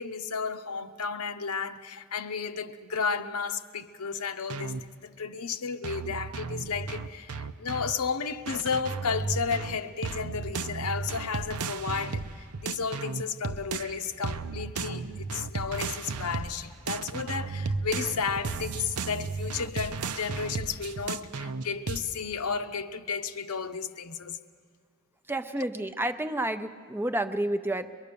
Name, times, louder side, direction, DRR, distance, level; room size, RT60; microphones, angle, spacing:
voice 1, 0.0-24.4, left 5 dB, 80° left, 0.8 m, -33 dB
sound 1, 4.5-4.8 5.8-7.9 8.5-14.0 14.2-16.6 16.9-22.0, right 4 dB, 85° right, 0.7 m, -34 dB
voice 2, 25.3-27.9, right 1 dB, 10° right, 0.5 m, -30 dB
23.0 x 22.5 x 6.9 m
head